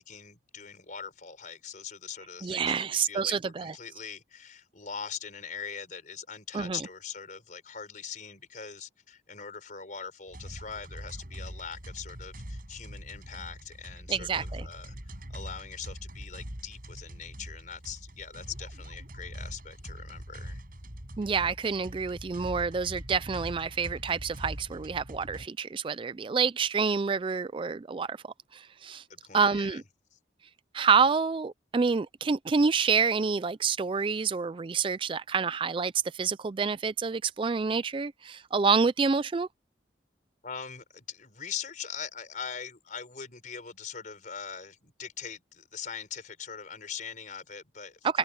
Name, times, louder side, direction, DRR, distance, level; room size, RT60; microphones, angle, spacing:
voice 1, 0.0-20.6 29.1-29.8 30.1-30.2 40.4-48.2, left 6 dB, 45° left, 4.7 m, -42 dB
voice 2, 2.4-3.7 6.5-6.8 14.1-14.7 21.2-28.2 28.5-29.0 29.3-29.8 30.7-39.5 48.0-48.2, right 5 dB, 30° right, 0.3 m, -28 dB
sound 1, 10.3-25.5, equal, 50° right, 6.1 m, -43 dB
head